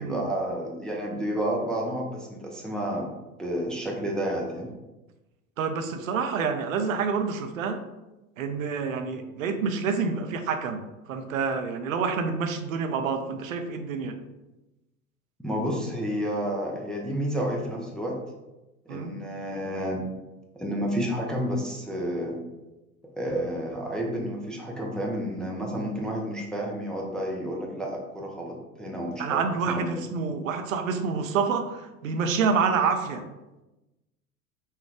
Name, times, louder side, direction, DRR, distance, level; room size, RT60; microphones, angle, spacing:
voice 1, 0.0-3.1 3.4-4.7 15.4-18.2 18.9-20.0 20.6-22.4 23.2-29.8, equal, ahead, -2 dB, 0.5 m, -30 dB
voice 2, 5.6-7.8 8.4-10.8 11.1-14.2 18.9-19.1 29.2-33.2, right 5 dB, 65° right, 6 dB, 0.6 m, -27 dB
5.5 x 2.3 x 3.5 m, 1.0 s
figure-of-eight pair, 85°, 43 cm